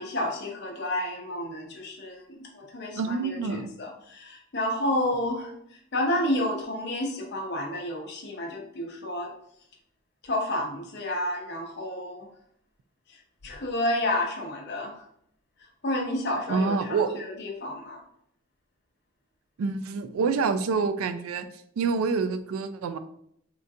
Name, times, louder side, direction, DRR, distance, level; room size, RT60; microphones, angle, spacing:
voice 1, 0.0-5.5 5.9-9.3 10.2-12.3 13.4-15.0 15.8-18.0, left 1 dB, 50° left, 1 dB, 0.7 m, -30 dB
voice 2, 3.0-3.7 16.5-17.2 19.6-21.5 21.8-23.0, right 4 dB, 85° right, 10 dB, 0.3 m, -27 dB
3.7 x 2.3 x 2.6 m, 0.68 s
head